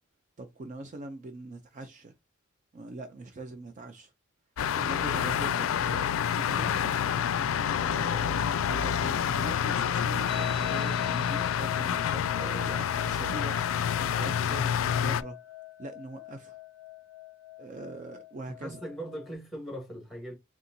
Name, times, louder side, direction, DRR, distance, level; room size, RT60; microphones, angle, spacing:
voice 1, 0.4-2.1 2.7-4.1 4.7-7.2 7.4-13.9 14.2-15.4 15.8-16.6 17.6-18.8, right 2 dB, 35° right, 0.4 m, -42 dB
sound 1, 4.6-15.2, left 8 dB, 70° left, 0.3 m, -28 dB
sound 2, 10.3-19.3, left 11 dB, 75° right, 2.2 m, -43 dB
voice 2, 18.5-20.4, right 1 dB, ahead, 1.4 m, -40 dB
4.2 x 3.6 x 2.6 m
head